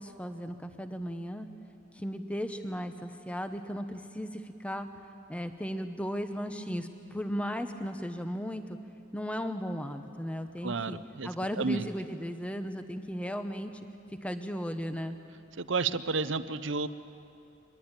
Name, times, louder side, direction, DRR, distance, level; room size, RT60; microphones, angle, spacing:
voice 1, 0.0-1.5 1.9-4.9 5.3-8.8 9.1-11.0 11.2-13.7 14.2-15.2, equal, 5° left, 8 dB, 1.0 m, -36 dB
voice 2, 10.6-11.3 11.6-11.9 15.6-16.9, right 4 dB, 65° right, 13 dB, 0.8 m, -31 dB
24.0 x 21.0 x 8.9 m, 2.6 s
head